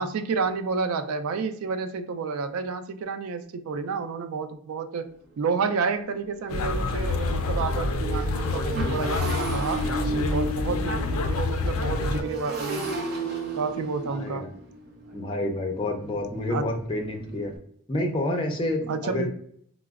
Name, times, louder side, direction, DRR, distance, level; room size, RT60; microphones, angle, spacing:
voice 1, 0.0-5.1 5.4-9.9 10.3-12.9 13.6-14.5 16.5-16.7 18.9-19.3, right 4 dB, 85° right, 9 dB, 0.4 m, -30 dB
Motorcycle, 5.0-5.1 5.5-5.7 6.0-17.6, right 2 dB, 45° right, 0.7 m, -34 dB
sound 1, 6.5-12.2, left 3 dB, 80° left, 0.4 m, -27 dB
voice 2, 14.1-14.5 15.1-17.5 17.9-19.3, left 1 dB, 25° left, 2 dB, 0.5 m, -29 dB
4.7 x 2.0 x 2.3 m, 0.64 s
head